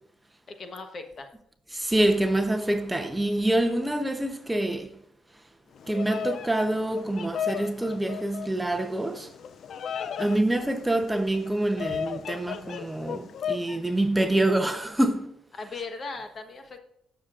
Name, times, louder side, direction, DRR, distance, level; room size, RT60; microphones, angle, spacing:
voice 1, 0.5-1.3 10.0-10.4 15.5-16.8, left 3 dB, 45° left, 1.1 m, -39 dB
voice 2, 1.7-4.9 5.9-9.3 10.2-15.3, right 1 dB, 10° right, 0.8 m, -26 dB
Bird vocalization bird call bird song, 5.7-13.8, left 7 dB, 65° left, 0.4 m, -35 dB
19.5 x 6.7 x 2.5 m
cardioid pair, 90°, 0 cm